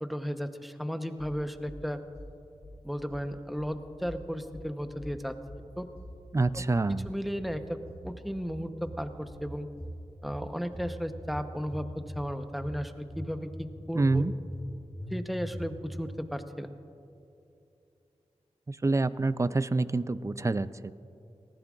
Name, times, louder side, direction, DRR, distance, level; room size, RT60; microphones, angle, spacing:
voice 1, 0.0-2.0 2.8-5.4 5.8-5.9 6.5-6.6 6.9-9.7 10.2-11.9 12.1-14.3 15.1-16.7, equal, ahead, 8 dB, 0.8 m, -35 dB
sound 1, 1.2-1.8 2.1-2.8 3.1-3.8 4.0-4.7 5.0-5.7 5.9-6.6 6.9-7.6 7.9-8.5 8.8-9.5 9.8-10.4 10.7-11.4 11.7-12.3 12.6-13.3 13.6-13.7 14.0-14.7 15.0-15.1 15.5-16.0, equal, 60° left, 3.0 m, -43 dB
voice 2, 6.3-7.1 13.9-14.3 18.7-20.9, right 3 dB, 25° right, 15 dB, 0.4 m, -27 dB
19.0 x 14.5 x 2.4 m, 2.7 s
cardioid pair, 45°, 12 cm